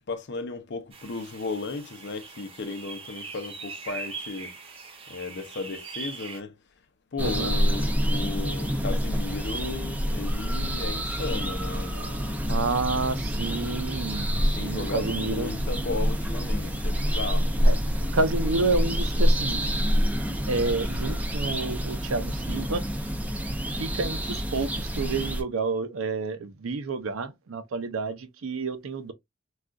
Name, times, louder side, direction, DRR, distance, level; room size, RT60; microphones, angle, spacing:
voice 1, 0.0-4.5 5.1-6.5 7.1-12.4 14.3-17.5, left 3 dB, 55° left, 0.6 m, -35 dB
sound 1, 0.9-6.4, right 4 dB, 30° right, 0.8 m, -41 dB
sound 2, 7.2-25.4, equal, 10° right, 0.5 m, -27 dB
voice 2, 7.2-7.5 12.5-15.5 17.6-19.6 20.5-22.8 23.8-29.1, right 3 dB, 80° right, 0.6 m, -29 dB
3.7 x 2.4 x 2.3 m
head